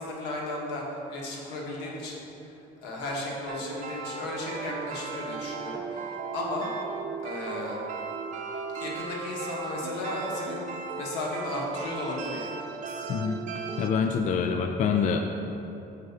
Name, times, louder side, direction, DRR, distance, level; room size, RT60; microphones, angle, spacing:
voice 1, 0.0-2.5 2.8-6.7 7.2-7.8 8.8-12.5, left 2 dB, 90° left, -2 dB, 1.5 m, -35 dB
sound 1, 3.5-13.9, right 4 dB, 50° right, 0.7 m, -36 dB
voice 2, 13.8-15.2, left 6 dB, 50° left, 5 dB, 0.4 m, -25 dB
6.4 x 4.7 x 5.5 m, 2.9 s
cardioid pair, 110°, 17 cm